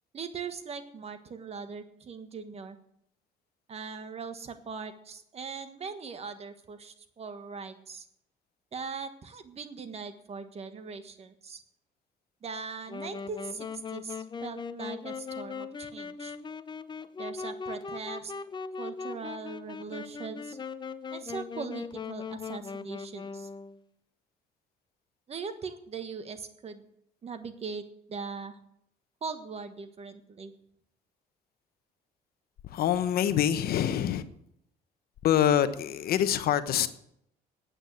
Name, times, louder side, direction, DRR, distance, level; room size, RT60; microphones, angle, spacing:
voice 1, 0.1-2.8 3.7-8.0 8.7-11.6 12.4-16.3 17.2-18.3 18.8-20.6 21.1-23.5 25.3-26.9 27.2-27.8 28.1-28.6 29.2-30.5, right 5 dB, 40° right, 1.4 m, -40 dB
Wind instrument woodwind instrument, 12.9-23.8, left 5 dB, 25° left, 0.7 m, -39 dB
voice 2, 32.6-34.2 35.2-36.9, left 10 dB, 65° left, 1.0 m, -25 dB
9.1 x 8.9 x 9.4 m
cardioid pair, 110°, 17 cm